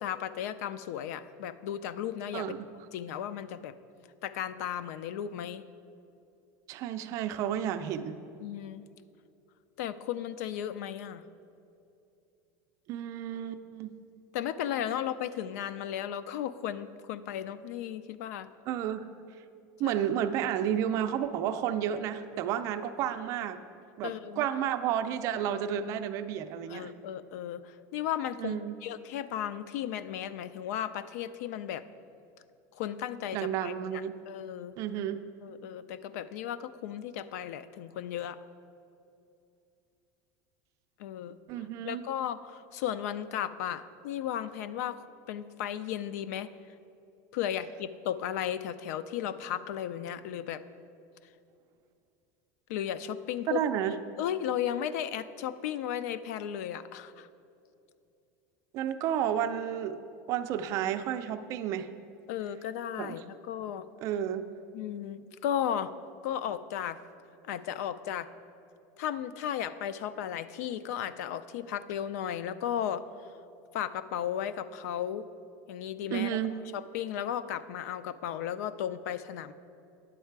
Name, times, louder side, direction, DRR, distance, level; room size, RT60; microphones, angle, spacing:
voice 1, 0.0-2.5 2.9-3.7 4.2-5.6 8.4-8.8 9.8-11.2 14.3-18.5 19.8-19.9 24.0-24.5 26.7-31.8 32.7-34.8 35.4-38.4 41.0-41.4 41.8-46.5 47.3-50.6 52.7-53.6 54.2-57.3 62.3-63.9 64.7-65.9 66.2-67.0 67.5-68.3 69.0-73.1 73.7-75.2 75.7-76.4 76.7-79.5, left 10 dB, 85° left, 14 dB, 0.4 m, -35 dB
voice 2, 2.3-2.7 6.7-8.2 12.9-13.9 18.7-19.1 19.8-23.6 24.0-26.9 28.4-28.7 33.3-34.2 34.8-35.2 41.5-42.0 53.5-54.0 58.7-60.0 60.3-61.9 63.0-63.2 64.0-64.5 76.1-76.5, right 10 dB, 40° right, 9 dB, 0.4 m, -31 dB
9.8 x 7.4 x 4.6 m, 2.7 s
cardioid pair, 175°, 8 cm